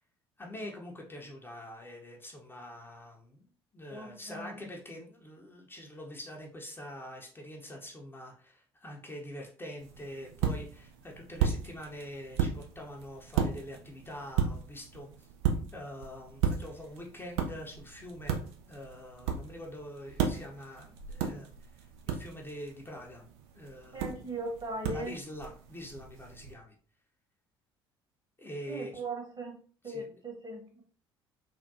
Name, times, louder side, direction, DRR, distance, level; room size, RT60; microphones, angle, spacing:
voice 1, 0.4-3.4 3.7-15.3 15.7-21.5 21.8-23.3 23.5-24.3 24.9-26.7 28.4-28.9 29.8-30.2, equal, 15° left, 0 dB, 0.7 m, -45 dB
voice 2, 3.9-4.7 23.9-25.1 28.7-29.6 29.8-30.8, right 2 dB, 35° right, 1 dB, 1.2 m, -39 dB
sound 1, 9.8-26.5, right 7 dB, 65° right, 0.5 m, -35 dB
3.5 x 2.2 x 2.7 m, 0.42 s
figure-of-eight pair, 55°, 13 cm